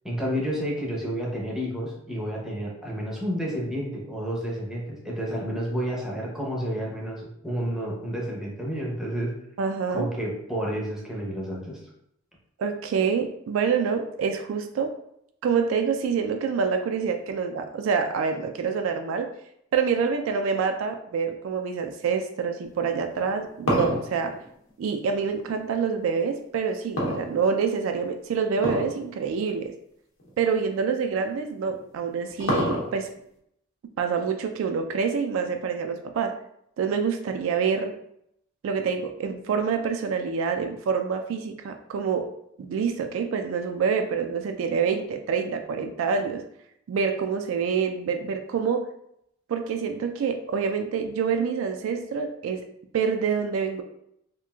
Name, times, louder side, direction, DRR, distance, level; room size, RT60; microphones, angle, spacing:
voice 1, 0.0-9.4 9.9-11.8, equal, 5° right, -3 dB, 0.6 m, -30 dB
voice 2, 9.6-10.1 12.6-14.9 15.4-19.3 19.7-24.3 24.8-29.7 30.4-33.1 34.0-36.3 36.8-37.9 38.6-42.3 42.6-46.4 46.9-48.9 49.5-52.7 52.9-53.8, right 6 dB, 70° right, 6 dB, 0.3 m, -26 dB
sound 1, 23.1-25.6 27.0-27.8 28.6-29.0 29.3-29.4 30.2-30.3 31.7-33.2, equal, 75° left, 0.8 m, -27 dB
3.0 x 2.4 x 2.3 m, 0.74 s
head